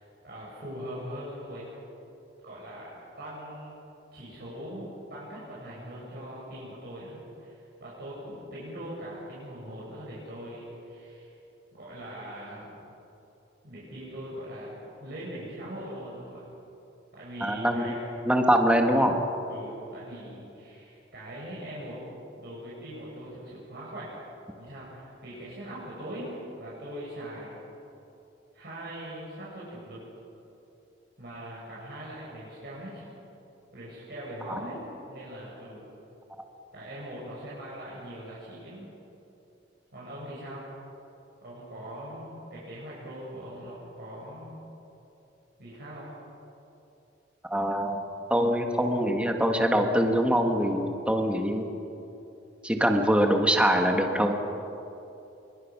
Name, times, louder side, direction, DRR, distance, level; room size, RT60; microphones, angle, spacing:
voice 1, 0.0-1.7 2.4-2.9 3.2-3.8 4.1-11.3 11.7-12.7 13.6-16.4 17.1-18.0 19.5-22.0 22.4-24.2 24.5-27.6 28.5-30.0 31.2-33.2 33.7-34.8 35.1-35.8 36.7-38.9 39.9-40.6 41.4-44.6 45.6-46.1, equal, 60° right, -7 dB, 6.5 m, -41 dB
voice 2, 17.4-17.9 18.3-19.2 34.5-34.6 47.5-48.0 48.3-51.7 52.6-54.3, equal, 5° right, 3 dB, 1.7 m, -23 dB
25.5 x 23.0 x 6.1 m, 2.8 s
head